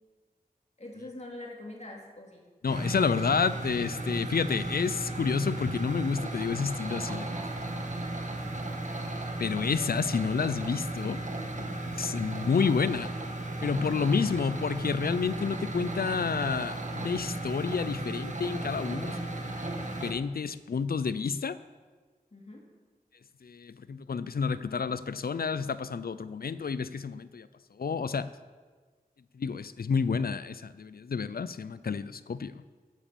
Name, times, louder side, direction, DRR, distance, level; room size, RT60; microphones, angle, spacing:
voice 1, 0.8-2.4 9.5-9.9 13.8-14.3 22.3-22.7, left 2 dB, 45° left, -1 dB, 2.6 m, -44 dB
voice 2, 2.6-7.3 8.7-8.8 9.4-11.2 11.5-13.1 13.6-21.6 23.4-27.5 27.8-28.3 29.3-32.5, left 5 dB, 70° left, 14 dB, 0.5 m, -30 dB
sound 1, 2.7-20.1, right 2 dB, 50° right, 1.5 m, -35 dB
9.1 x 8.1 x 7.1 m, 1.4 s
cardioid pair, 40°, 16 cm